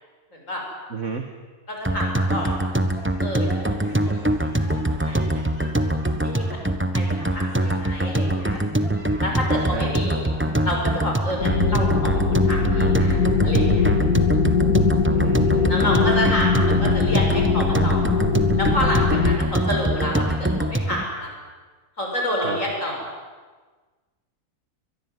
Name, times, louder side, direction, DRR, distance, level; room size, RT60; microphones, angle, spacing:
voice 1, 0.3-0.6 1.7-2.7 3.2-5.2 5.7-5.9 6.2-6.4 6.9-8.6 9.2-10.3 10.6-13.9 15.7-18.1 18.6-21.3 22.0-23.1, left 1 dB, 55° left, 0 dB, 7.5 m, -29 dB
voice 2, 0.9-1.3 9.7-9.9 15.1-16.2 22.4-22.6, right 5 dB, 55° right, 5 dB, 1.9 m, -31 dB
sound 1, 1.8-21.0, right 1 dB, 10° right, 1.2 m, -23 dB
sound 2, 2.0-10.9, left 1 dB, 20° left, 6.2 m, -44 dB
sound 3, 11.4-19.4, left 5 dB, 75° left, 2.4 m, -21 dB
23.5 x 21.5 x 9.7 m, 1.4 s
omnidirectional pair, 1.6 m